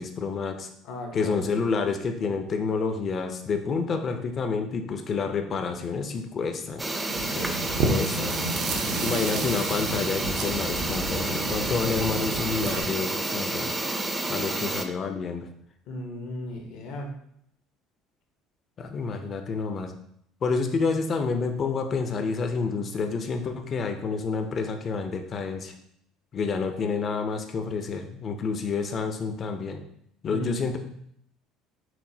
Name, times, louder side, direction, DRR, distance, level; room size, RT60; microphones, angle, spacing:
voice 1, 0.0-0.7 1.1-6.8 7.9-8.3 9.0-13.7 14.3-15.5 18.8-19.9 20.4-25.7 26.3-29.8 30.2-30.8, left 4 dB, 40° left, 6 dB, 0.5 m, -29 dB
voice 2, 0.8-1.4 7.3-7.6 15.9-17.1 30.3-30.6, left 1 dB, 70° left, 2 dB, 0.9 m, -36 dB
sound 1, 6.8-14.8, right 2 dB, 15° right, 0.4 m, -30 dB
sound 2, 7.1-12.8, right 3 dB, 80° right, 0.6 m, -31 dB
5.8 x 2.1 x 2.8 m, 0.71 s
supercardioid pair, 100°, 0 cm